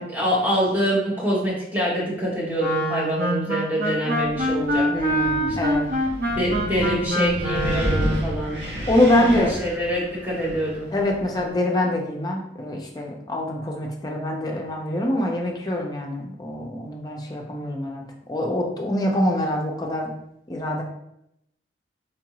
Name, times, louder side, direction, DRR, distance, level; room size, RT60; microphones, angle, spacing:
voice 1, 0.1-4.9 6.3-8.7 9.3-10.9, equal, 10° right, -6 dB, 1.0 m, -25 dB
Wind instrument woodwind instrument, 2.6-8.3, equal, 50° right, 0.6 m, -25 dB
Wind, 4.2-11.5, equal, 70° right, 1.2 m, -32 dB
voice 2, 4.9-5.9 8.9-9.6 10.9-20.1 20.5-20.8, left 1 dB, 20° left, 0 dB, 0.5 m, -24 dB
4.6 x 2.5 x 2.9 m, 0.80 s
head